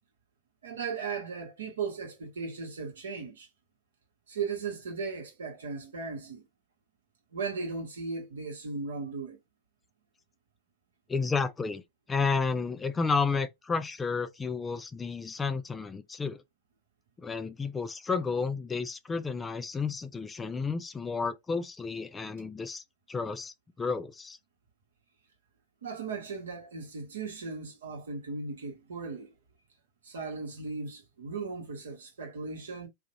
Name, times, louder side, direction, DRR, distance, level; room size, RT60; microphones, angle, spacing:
voice 1, 0.6-3.5 4.3-6.4 7.3-9.4 25.8-29.3 30.0-32.9, right 4 dB, 80° right, 0.9 m, -37 dB
voice 2, 11.1-11.8 12.1-16.4 17.2-24.4, left 4 dB, 20° left, 0.4 m, -31 dB
2.5 x 2.1 x 2.9 m
hypercardioid pair, 95°, 0 cm